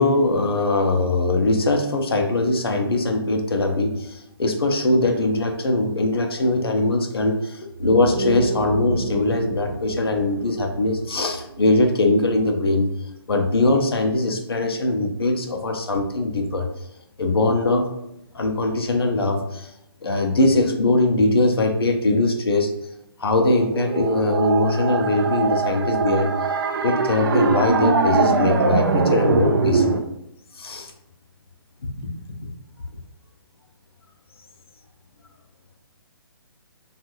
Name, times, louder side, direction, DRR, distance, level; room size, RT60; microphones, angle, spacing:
voice 1, 0.0-12.9 13.3-16.7 17.2-17.9 18.3-19.7 20.0-22.7 23.2-26.3 26.8-29.9 30.6-30.9 32.0-32.1, left 2 dB, 70° left, 3 dB, 0.5 m, -21 dB
sound 1, 7.7-12.5, right 2 dB, 85° right, 0.9 m, -30 dB
sound 2, 23.5-30.0, right 4 dB, 60° right, 0.4 m, -22 dB
2.5 x 2.4 x 2.9 m, 0.82 s
figure-of-eight pair, 135°, 13 cm